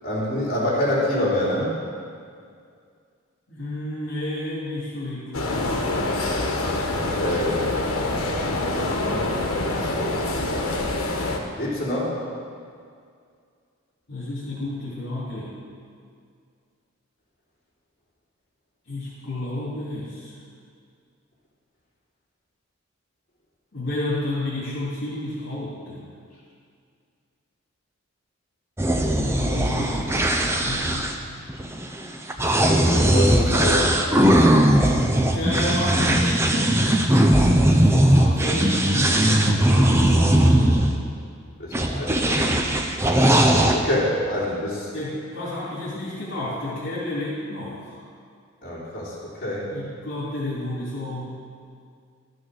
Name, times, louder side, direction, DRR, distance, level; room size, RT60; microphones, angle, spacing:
voice 1, 0.0-1.8 6.9-7.7 8.0-10.8 11.6-12.2 32.5-33.9 41.6-42.6 43.7-44.9 48.6-49.7, left 1 dB, 35° left, -9 dB, 3.5 m, -27 dB
voice 2, 3.5-5.9 14.1-15.5 18.9-20.3 23.7-26.1 29.1-31.1 35.3-37.0 37.9-40.8 44.9-48.0 49.7-51.4, left 1 dB, 55° left, -9 dB, 2.8 m, -31 dB
sound 1, 5.3-11.4, left 2 dB, 85° left, 1.3 m, -26 dB
sound 2, 28.8-40.9 41.7-43.8, right 1 dB, 10° right, 0.6 m, -19 dB
13.0 x 6.3 x 6.5 m, 2.2 s
head